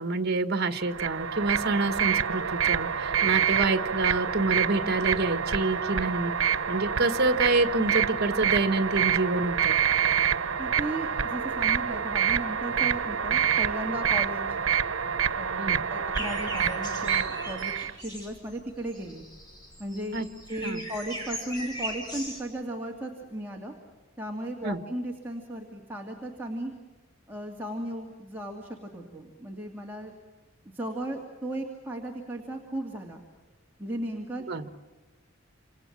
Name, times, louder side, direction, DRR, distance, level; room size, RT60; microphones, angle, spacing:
voice 1, 0.0-9.8 15.6-15.8 20.1-20.3 20.6-20.8 24.6-24.8 34.5-34.7, right 3 dB, 55° right, 10 dB, 1.5 m, -27 dB
sound 1, 0.8-17.9, right 8 dB, 90° right, 0.9 m, -27 dB
voice 2, 10.6-14.6 15.3-19.2 19.8-23.7 24.2-26.7 27.3-30.1 30.6-33.2 33.8-34.5, right 1 dB, 10° right, 0 dB, 2.4 m, -36 dB
sound 2, 16.1-22.4, equal, 20° left, 5.8 m, -39 dB
28.5 x 27.0 x 7.4 m, 1.3 s
head